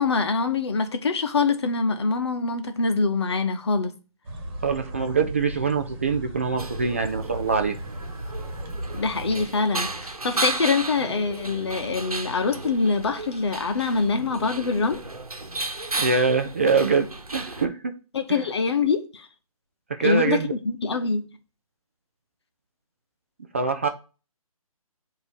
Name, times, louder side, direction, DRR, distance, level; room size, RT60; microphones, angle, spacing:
voice 1, 0.0-3.9 8.9-15.0 18.1-19.3 20.0-21.3, left 4 dB, 45° left, 1.0 m, -24 dB
sound 1, 4.2-9.5, right 1 dB, 40° right, 1.6 m, -36 dB
voice 2, 4.6-7.8 16.0-18.0 18.3-18.4 19.9-20.5 23.5-23.9, right 4 dB, 25° right, 0.3 m, -24 dB
sound 2, 6.6-17.7, right 2 dB, 80° right, 1.1 m, -34 dB
7.1 x 2.8 x 5.2 m
figure-of-eight pair, 140°, 19 cm